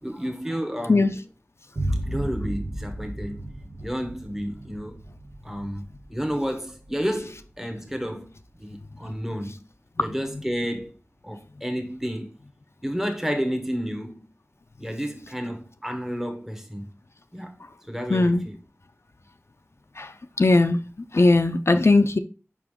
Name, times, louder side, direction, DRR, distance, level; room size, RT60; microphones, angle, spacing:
voice 1, 0.0-1.2 2.0-3.4 3.8-5.0 5.4-5.8 6.1-8.3 8.6-9.6 10.0-11.0 11.2-12.3 12.8-14.3 14.8-16.9 17.3-17.5 17.9-18.6, equal, 5° right, 1.1 m, -31 dB
sound 1, 1.8-9.1, right 1 dB, 75° right, 1.2 m, -34 dB
voice 2, 18.1-18.5 20.0-20.1 20.4-20.8 21.1-22.2, left 2 dB, 60° left, 0.4 m, -18 dB
5.4 x 4.8 x 3.6 m
wide cardioid pair, 50°, 5 cm